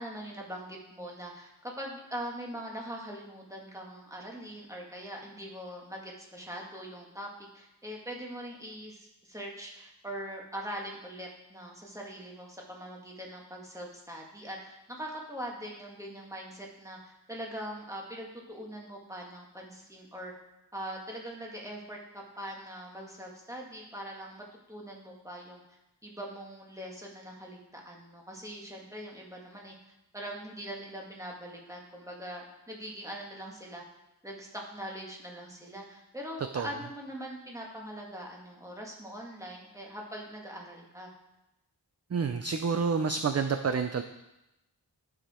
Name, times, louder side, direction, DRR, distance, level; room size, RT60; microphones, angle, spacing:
voice 1, 0.0-7.3 7.5-20.3 20.7-25.6 26.0-29.8 30.1-33.8 34.2-41.1, equal, 5° right, -1 dB, 1.8 m, -42 dB
voice 2, 42.1-44.0, right 5 dB, 40° right, 8 dB, 0.5 m, -28 dB
12.0 x 4.9 x 4.3 m, 0.91 s
wide cardioid pair, 70°, 42 cm